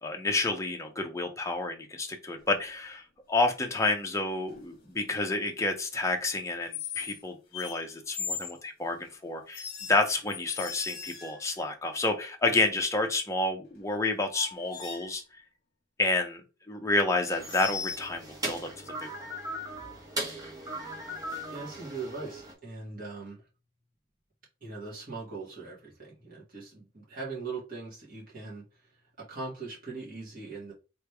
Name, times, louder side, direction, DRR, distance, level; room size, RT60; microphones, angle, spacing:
voice 1, 0.0-15.2 16.0-19.1, left 2 dB, 15° left, 3 dB, 0.7 m, -30 dB
sound 1, 2.4-2.7 4.5-4.8 6.7-7.2 7.5-8.6 9.5-11.6 13.8-13.9 14.3-15.2 17.4-18.1, left 6 dB, 50° left, 1.2 m, -38 dB
sound 2, 17.3-22.5, right 1 dB, 20° right, 1.2 m, -38 dB
voice 2, 21.5-23.4 24.6-28.6 29.2-30.7, right 3 dB, 45° right, -5 dB, 2.3 m, -40 dB
4.0 x 3.2 x 3.4 m, 0.31 s
head